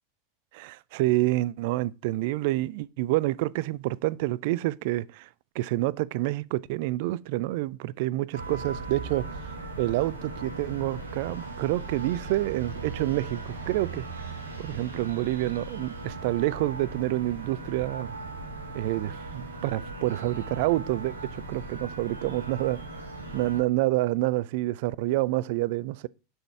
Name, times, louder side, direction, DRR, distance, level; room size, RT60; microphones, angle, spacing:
voice 1, 0.5-5.3 5.6-9.4 9.8-14.3 14.6-18.2 18.7-23.1 23.3-26.1, right 17 dB, 55° right, 0.3 m, -28 dB
sound 1, 8.3-23.6, right 3 dB, 85° right, 1.5 m, -38 dB
6.6 x 4.4 x 4.5 m
figure-of-eight pair, 85°, 0 cm